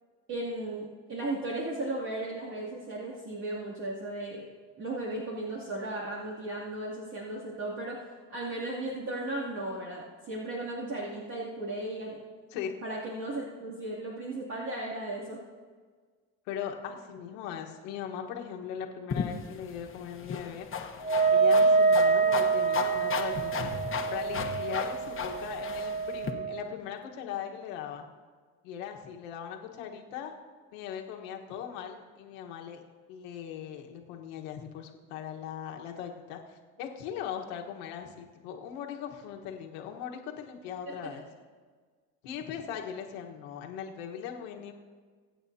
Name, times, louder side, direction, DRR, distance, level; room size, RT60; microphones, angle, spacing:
voice 1, 0.3-4.5 4.8-12.2 12.8-15.4 40.8-41.1, right 2 dB, 50° right, -7 dB, 2.8 m, -36 dB
voice 2, 12.5-12.8 16.5-20.7 21.3-23.7 24.1-28.0 28.6-30.3 30.7-32.8 33.1-41.2 42.2-44.7, left 8 dB, 90° left, 2 dB, 1.5 m, -39 dB
sound 1, 19.1-26.3, left 6 dB, 35° left, 1.2 m, -36 dB
Wind instrument woodwind instrument, 21.0-26.7, right 4 dB, 15° right, 2.0 m, -26 dB
23.5 x 8.6 x 2.8 m, 1.5 s
supercardioid pair, 95°, 38 cm